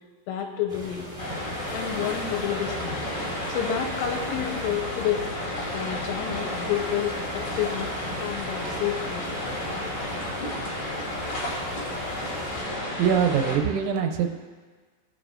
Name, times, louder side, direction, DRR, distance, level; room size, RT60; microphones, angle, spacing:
voice 1, 0.3-1.1 1.7-3.0 3.5-5.2 5.7-7.9 8.2-9.3, left 10 dB, 85° left, 2 dB, 3.2 m, -29 dB
sound 1, 0.7-12.6, right 1 dB, 45° right, 0.6 m, -41 dB
sound 2, 1.2-13.6, left 1 dB, 60° left, 1.5 m, -32 dB
voice 2, 12.7-14.4, right 7 dB, 80° right, 4 dB, 2.8 m, -24 dB
17.5 x 7.1 x 2.5 m, 1.5 s
omnidirectional pair, 5.6 m